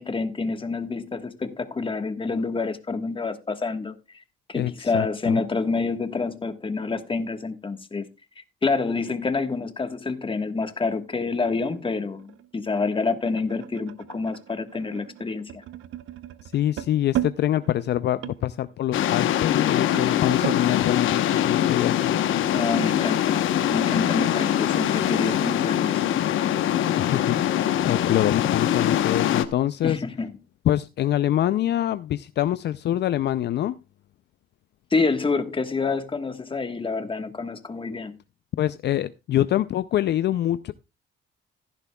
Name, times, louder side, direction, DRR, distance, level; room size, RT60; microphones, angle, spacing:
voice 1, 0.0-4.0 4.5-8.0 8.6-15.6 22.5-26.0 29.8-30.3 34.9-38.1, left 4 dB, 25° left, 1.4 m, -27 dB
voice 2, 4.5-5.4 16.4-22.2 27.0-30.0 30.7-33.8 38.6-40.7, left 12 dB, 60° left, 0.4 m, -25 dB
sound 1, 10.9-20.7, right 12 dB, 80° right, 0.8 m, -37 dB
sound 2, 18.9-29.5, left 11 dB, 80° left, 1.0 m, -23 dB
15.5 x 10.5 x 2.3 m
cardioid pair, 90°, 20 cm